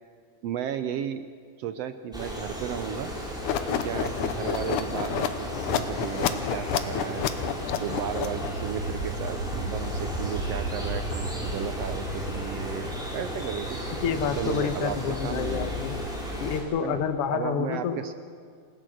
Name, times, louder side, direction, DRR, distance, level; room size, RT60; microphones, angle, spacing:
voice 1, 0.4-1.3 1.6-3.1 3.7-7.3 7.8-13.8 14.3-15.0 15.2-15.8 16.8-17.0 17.3-18.1, right 9 dB, 75° right, 10 dB, 1.5 m, -34 dB
sound 1, 2.1-16.6, equal, ahead, 4.6 m, -34 dB
sound 2, 3.4-8.7, left 9 dB, 85° left, 2.4 m, -29 dB
sound 3, 7.2-13.9, right 2 dB, 45° right, 1.5 m, -36 dB
voice 2, 14.0-16.0 16.4-18.0, left 7 dB, 60° left, 7 dB, 1.8 m, -28 dB
28.0 x 17.0 x 6.4 m, 2.1 s
omnidirectional pair, 3.5 m